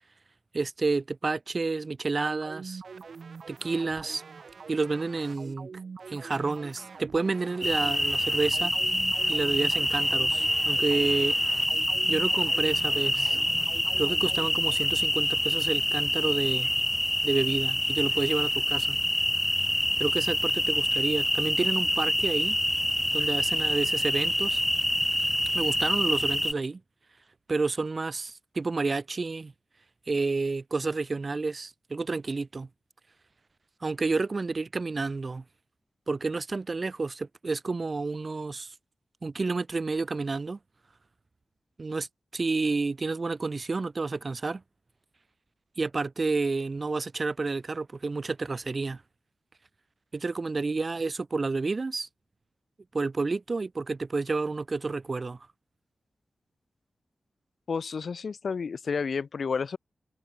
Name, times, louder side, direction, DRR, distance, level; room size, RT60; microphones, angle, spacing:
voice 1, 0.5-2.8 3.5-4.2 4.7-5.7 6.1-8.7 9.3-11.4 12.1-13.4 14.0-16.7 17.2-19.0 20.0-22.6 23.1-24.6 25.5-26.8 27.5-29.5 30.1-32.7 33.8-35.4 36.1-38.7 39.2-40.6 41.8-42.1 42.3-44.6 45.8-49.0 50.1-52.1 52.9-55.4, right 3 dB, 45° right, 2.0 m, -30 dB
sound 1, 2.2-14.8, right 5 dB, 70° right, 4.4 m, -44 dB
sound 2, 7.6-26.5, equal, ahead, 0.5 m, -26 dB
voice 2, 57.7-59.8, left 5 dB, 70° left, 1.5 m, -31 dB
wide cardioid pair, 85°, 0 cm